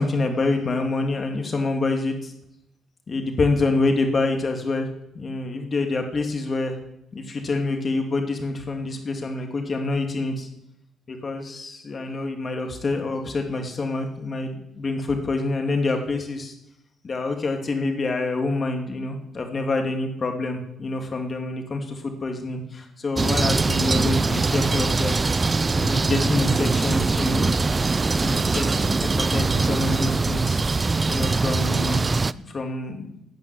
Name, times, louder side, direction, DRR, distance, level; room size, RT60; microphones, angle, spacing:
voice 1, 0.0-2.3 3.1-4.9 5.1-6.8 7.1-10.5 11.1-16.5 17.0-25.1 25.8-27.5 28.0-30.6 31.1-32.1 32.5-33.1, left 3 dB, 40° left, 4 dB, 2.9 m, -26 dB
sound 1, 23.2-32.3, right 3 dB, 25° right, 0.5 m, -22 dB
16.0 x 5.9 x 9.9 m, 0.79 s
cardioid pair, 90°, 0 cm